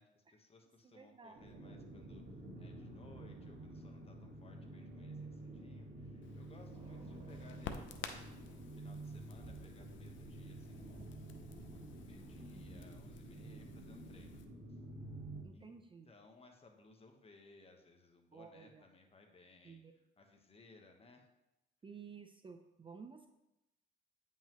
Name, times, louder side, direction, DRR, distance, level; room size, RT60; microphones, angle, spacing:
voice 1, 0.0-2.2 2.6-14.4 15.5-15.8 16.0-19.8 20.2-21.3, left 3 dB, 30° left, 3 dB, 1.2 m, -63 dB
voice 2, 0.8-1.5 15.4-16.1 18.3-18.9 19.6-19.9 21.8-23.3, right 5 dB, 25° right, 7 dB, 0.5 m, -54 dB
sound 1, 1.3-15.4, right 2 dB, 50° right, 1.7 m, -50 dB
Crackle, 6.2-14.4, left 7 dB, 70° left, 0.7 m, -52 dB
8.9 x 5.6 x 3.0 m, 0.93 s
cardioid pair, 90°, 20 cm